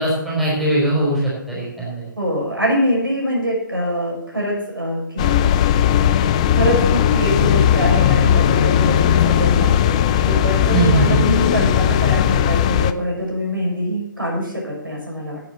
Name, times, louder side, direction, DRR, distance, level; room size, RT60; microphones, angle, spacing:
voice 1, 0.0-2.0 10.7-11.2, right 2 dB, ahead, -7 dB, 3.9 m, -20 dB
voice 2, 2.2-5.3 6.5-15.4, equal, 85° right, -1 dB, 6.5 m, -23 dB
sound 1, 5.2-12.9, left 10 dB, 20° left, 0.4 m, -17 dB
10.5 x 8.8 x 7.3 m, 0.78 s
figure-of-eight pair, 140°, 11 cm